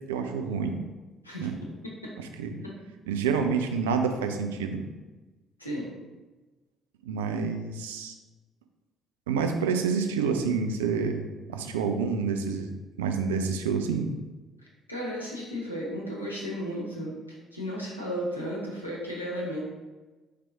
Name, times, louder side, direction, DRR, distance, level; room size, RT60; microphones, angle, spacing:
voice 1, 0.1-0.7 1.4-1.6 2.2-2.5 3.1-4.8 7.0-8.1 9.3-12.7 13.0-14.1, right 5 dB, 70° right, 5 dB, 0.3 m, -28 dB
voice 2, 14.9-19.6, equal, 90° left, -4 dB, 0.7 m, -34 dB
4.4 x 3.3 x 3.5 m, 1.2 s
figure-of-eight pair, 50°, 0 cm